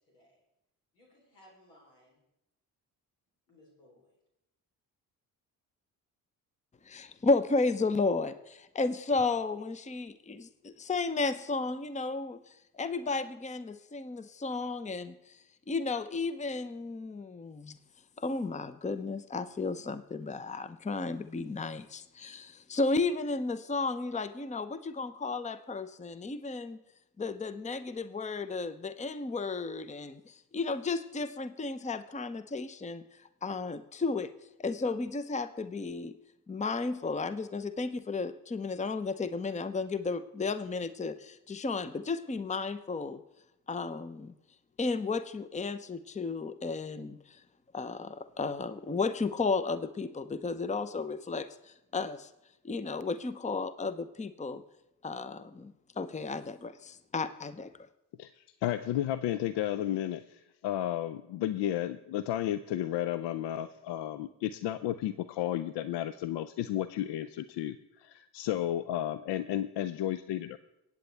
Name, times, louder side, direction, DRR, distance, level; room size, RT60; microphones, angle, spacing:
voice 1, 0.1-0.4 0.9-2.2 3.5-4.2, left 1 dB, 90° left, -2 dB, 3.8 m, -61 dB
voice 2, 6.8-15.4 15.7-17.8 18.2-26.8 27.2-33.0 33.4-34.3 34.6-36.1 36.5-43.2 43.7-44.3 44.8-47.4 47.7-52.3 52.6-54.6 55.0-57.7, left 3 dB, 15° left, 13 dB, 0.8 m, -33 dB
voice 3, 58.2-70.6, left 12 dB, 60° left, 14 dB, 0.6 m, -33 dB
25.0 x 8.6 x 3.4 m, 0.87 s
hypercardioid pair, 45°, 47 cm